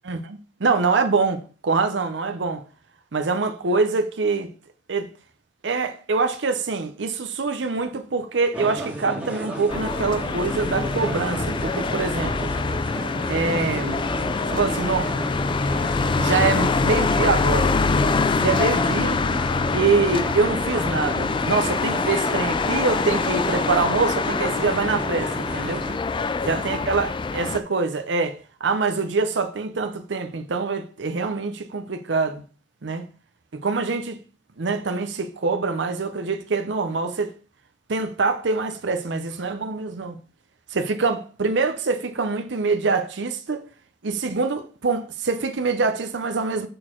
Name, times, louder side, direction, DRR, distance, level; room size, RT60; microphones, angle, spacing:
voice 1, 0.1-2.6 3.1-4.5 4.9-5.1 5.6-12.5 13.3-14.0 14.5-15.1 16.1-17.7 18.3-19.2 19.7-25.8 26.4-32.4 32.8-33.0 33.5-34.2 34.6-37.3 37.9-40.2 40.7-43.6 44.0-46.7, right 4 dB, 70° right, 0.7 m, -24 dB
sound 1, 8.5-26.0, right 1 dB, 5° right, 2.0 m, -33 dB
sound 2, 9.7-27.6, left 4 dB, 25° left, 0.3 m, -24 dB
6.5 x 4.4 x 4.4 m
head